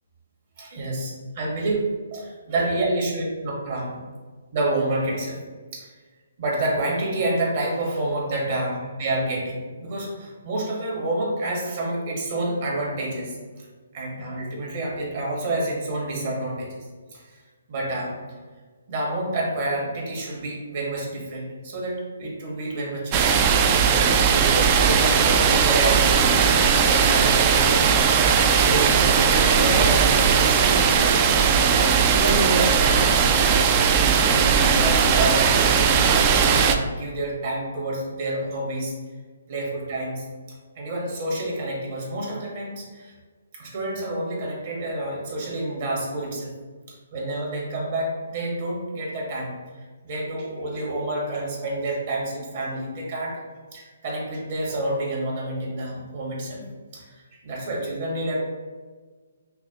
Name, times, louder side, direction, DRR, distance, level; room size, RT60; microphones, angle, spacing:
voice 1, 0.6-1.8 2.1-4.0 4.5-5.4 5.7-5.9 6.4-13.6 13.9-16.8 17.1-17.4 17.7-18.2 18.9-23.4 23.7-26.3 26.8-27.9 28.6-30.6 31.2-31.5 32.0-33.6 34.1-38.9 39.5-40.2 40.7-43.1 43.5-46.5 47.1-49.6 50.0-53.4 53.7-56.6 56.9-57.1 57.4-58.4, right 1 dB, 50° right, -3 dB, 1.4 m, -28 dB
sound 1, 23.1-36.8, right 6 dB, 30° right, 0.3 m, -18 dB
5.8 x 2.0 x 2.9 m, 1.4 s
hypercardioid pair, 145°, 0 cm